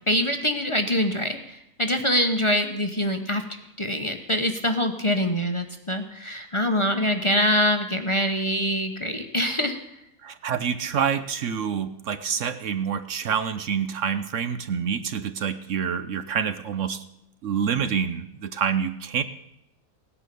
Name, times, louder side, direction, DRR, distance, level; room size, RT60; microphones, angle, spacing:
voice 1, 0.1-3.4 3.8-9.8, equal, 25° left, 5 dB, 0.9 m, -24 dB
voice 2, 10.2-17.0 17.4-19.2, right 7 dB, 65° right, 11 dB, 1.0 m, -27 dB
17.0 x 10.0 x 6.8 m, 0.82 s
omnidirectional pair, 1.5 m